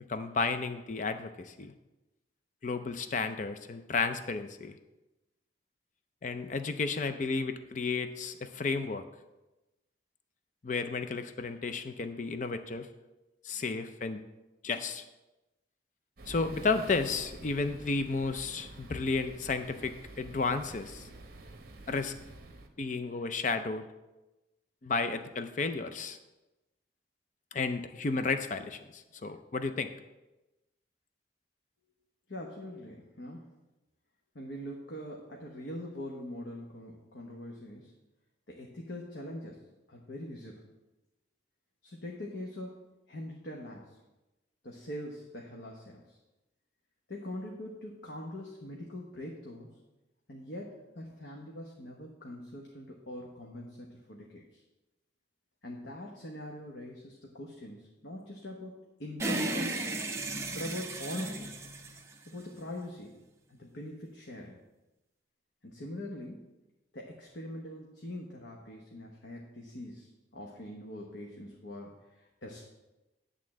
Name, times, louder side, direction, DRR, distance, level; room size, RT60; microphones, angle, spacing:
voice 1, 0.1-1.7 2.6-4.8 6.2-9.0 10.6-12.9 13.4-14.2 14.6-15.0 16.3-21.1 21.9-22.1 22.8-23.9 24.8-26.2 27.5-29.9, left 4 dB, 40° left, 9 dB, 0.5 m, -32 dB
sound 1, 16.2-22.7, right 2 dB, 50° right, 0.9 m, -48 dB
voice 2, 32.3-33.5 34.3-37.9 38.5-39.6 39.9-40.7 41.8-44.0 44.6-46.2 47.1-49.7 50.3-54.6 55.6-59.9 60.5-61.5 62.3-63.2 63.5-64.6 65.6-66.5 66.9-72.6, left 1 dB, 70° left, -1 dB, 1.1 m, -43 dB
sound 2, 59.2-62.7, right 2 dB, 15° right, 0.6 m, -35 dB
10.5 x 3.7 x 7.4 m, 1.0 s
head